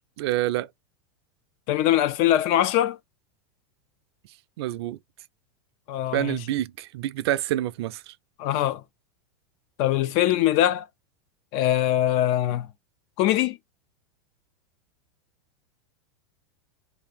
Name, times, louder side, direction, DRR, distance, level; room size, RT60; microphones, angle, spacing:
voice 1, 0.2-0.7 4.6-5.0 6.1-8.1, right 14 dB, 70° right, 0.4 m, -27 dB
voice 2, 1.7-3.0 5.9-6.4 8.4-8.8 9.8-10.9 11.5-12.7 13.2-13.6, left 13 dB, 45° left, 0.4 m, -22 dB
2.7 x 2.6 x 3.9 m
supercardioid pair, 140°, 14 cm